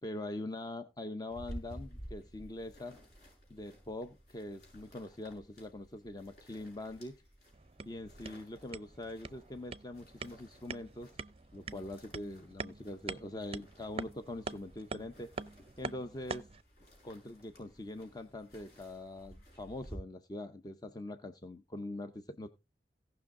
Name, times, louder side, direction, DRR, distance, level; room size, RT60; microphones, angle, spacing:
voice 1, 0.0-3.0 3.5-7.2 7.8-11.1 11.5-15.3 15.8-16.5 17.0-22.5, left 1 dB, 20° left, 8 dB, 0.6 m, -43 dB
sound 1, 1.3-20.0, equal, 55° left, 7.2 m, -54 dB
sound 2, 7.5-16.6, right 4 dB, 35° right, 0.6 m, -45 dB
17.5 x 6.1 x 3.7 m, 0.26 s
head